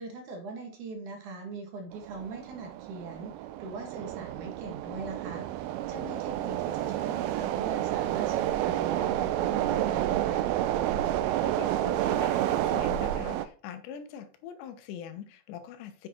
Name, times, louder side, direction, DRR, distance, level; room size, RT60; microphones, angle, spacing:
voice 1, 0.0-10.5, right 3 dB, 55° right, 3 dB, 2.7 m, -41 dB
sound 1, 1.9-13.4, right 13 dB, 80° right, 2.2 m, -30 dB
voice 2, 11.4-16.1, left 8 dB, 85° left, 9 dB, 3.3 m, -42 dB
7.9 x 7.2 x 4.4 m, 0.40 s
omnidirectional pair, 4.9 m